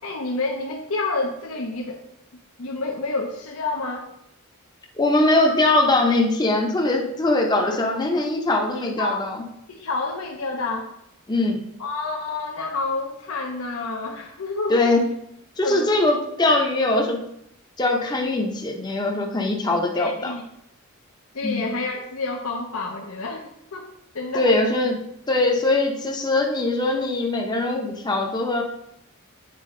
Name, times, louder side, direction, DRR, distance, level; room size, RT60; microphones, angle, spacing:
voice 1, 0.0-2.0 2.6-4.1 9.0-9.2 9.7-10.9 11.8-14.8 15.6-15.9 19.9-20.4 21.3-23.9 24.1-24.5, left 3 dB, 75° left, 0 dB, 0.8 m, -29 dB
voice 2, 5.0-9.4 11.3-11.6 14.7-15.1 15.6-17.2 17.8-20.3 21.4-21.6 24.3-28.6, left 2 dB, 20° left, 1 dB, 0.7 m, -21 dB
8.4 x 4.4 x 3.8 m, 0.78 s
head